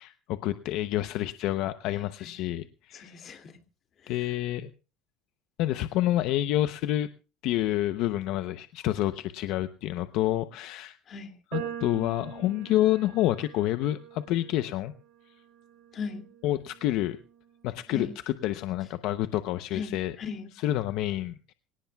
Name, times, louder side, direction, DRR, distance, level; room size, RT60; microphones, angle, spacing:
voice 1, 0.0-3.2 4.1-4.7 5.6-7.1 7.4-11.0 11.5-14.9 16.4-17.2 17.6-20.1 20.6-21.5, left 14 dB, 60° left, 11 dB, 0.7 m, -28 dB
voice 2, 2.9-3.5 4.0-4.3 11.1-11.3 15.9-16.3 17.9-18.1 19.7-20.5, left 5 dB, 35° left, 6 dB, 2.5 m, -38 dB
sound 1, 11.5-17.8, right 10 dB, 65° right, 7.3 m, -44 dB
24.5 x 17.5 x 2.3 m, 0.34 s
cardioid pair, 145°, 0 cm